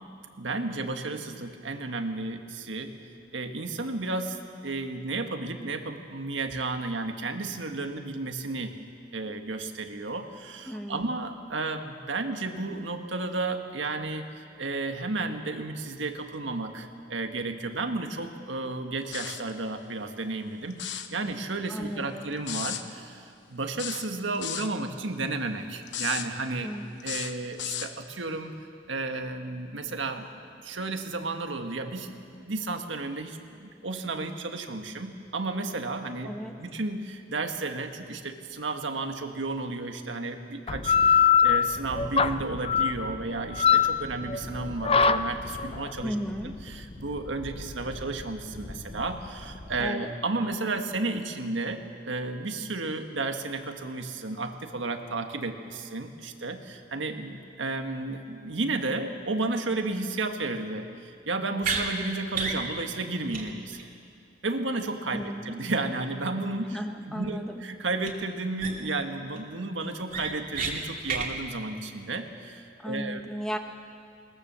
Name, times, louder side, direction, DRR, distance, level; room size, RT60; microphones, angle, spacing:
voice 1, 0.4-2.9 3.3-4.4 4.6-8.8 9.1-26.8 27.0-28.5 28.9-30.3 30.6-36.3 36.6-46.1 46.4-63.8 64.4-66.8 67.1-73.2, right 3 dB, 90° right, 5 dB, 1.6 m, -33 dB
voice 2, 10.7-11.1 21.7-22.3 26.6-26.8 36.2-36.6 46.0-46.5 49.8-50.1 65.1-65.6 66.7-67.6 72.8-73.6, equal, 5° left, 4 dB, 1.1 m, -35 dB
sound 1, 19.1-19.5 20.7-21.1 22.5-22.8 23.8-24.7 25.9-26.3 27.0-27.9, left 10 dB, 70° left, 1.0 m, -34 dB
sound 2, 40.7-49.9, left 7 dB, 30° left, 0.5 m, -24 dB
sound 3, 61.6-61.8 62.3-62.6 62.9-63.0 63.3-63.4 63.7-63.8 68.0-68.1 68.6-69.0 69.4-69.5 69.8-70.7 71.0-71.3, right 5 dB, 50° right, 2.4 m, -30 dB
21.5 x 19.0 x 6.9 m, 2.3 s
head